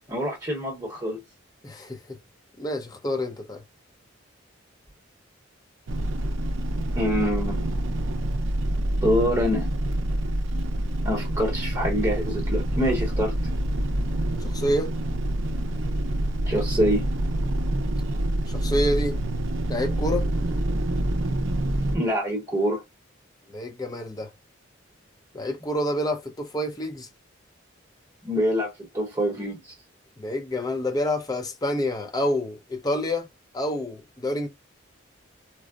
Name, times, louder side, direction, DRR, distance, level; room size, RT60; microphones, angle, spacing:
voice 1, 0.1-1.2 6.9-7.6 9.0-9.7 11.0-13.3 16.5-17.1 21.9-22.8 28.2-29.7, equal, 15° right, 0.9 m, -25 dB
voice 2, 1.6-2.2 2.6-3.6 14.4-14.9 18.5-19.2 19.7-20.3 23.5-24.3 25.3-27.1 30.2-33.3 33.5-34.5, left 1 dB, 20° left, 0.5 m, -28 dB
sound 1, 5.9-22.0, right 1 dB, 80° right, 0.5 m, -26 dB
4.5 x 2.0 x 2.3 m
head